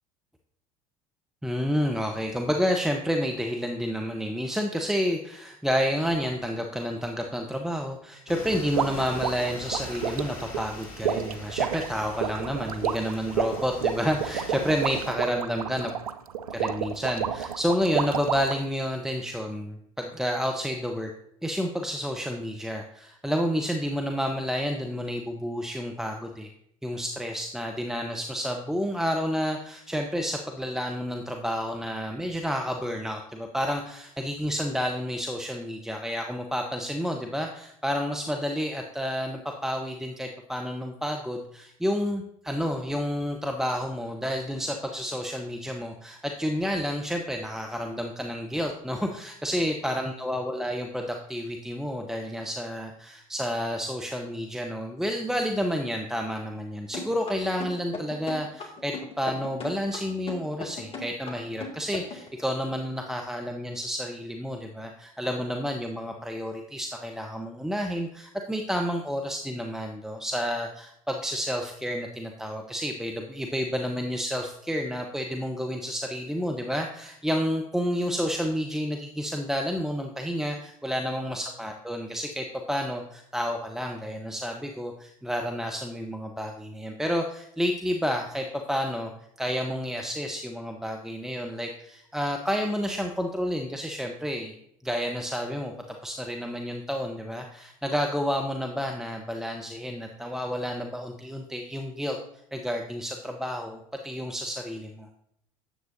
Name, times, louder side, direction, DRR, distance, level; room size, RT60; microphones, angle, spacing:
voice 1, 1.4-15.9 16.5-21.1 21.4-26.5 26.8-89.1 89.4-94.6 94.8-95.7 96.0-102.2 102.5-105.1, equal, ahead, 3 dB, 0.9 m, -30 dB
sound 1, 8.3-15.1, left 2 dB, 50° left, 2.7 m, -42 dB
sound 2, 8.8-18.7, right 7 dB, 85° right, 0.5 m, -30 dB
sound 3, 56.9-62.3, left 3 dB, 30° left, 2.1 m, -37 dB
10.0 x 7.6 x 2.6 m, 0.73 s
hypercardioid pair, 70°, 18 cm